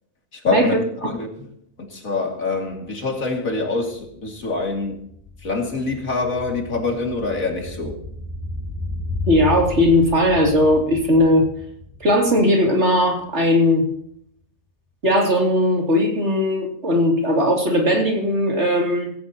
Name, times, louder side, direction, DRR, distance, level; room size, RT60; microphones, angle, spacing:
voice 1, 0.3-0.7 1.0-1.3 1.8-5.0 5.4-8.0, left 3 dB, 60° left, 1 dB, 3.1 m, -25 dB
sound 1, 2.7-2.8 3.0-13.4 13.7-13.8, left 3 dB, 30° right, 4.8 m, -34 dB
voice 2, 9.3-11.5 12.0-13.9 15.0-19.1, left 1 dB, 45° right, 1 dB, 3.2 m, -18 dB
16.5 x 16.0 x 3.0 m, 0.68 s
omnidirectional pair, 1.6 m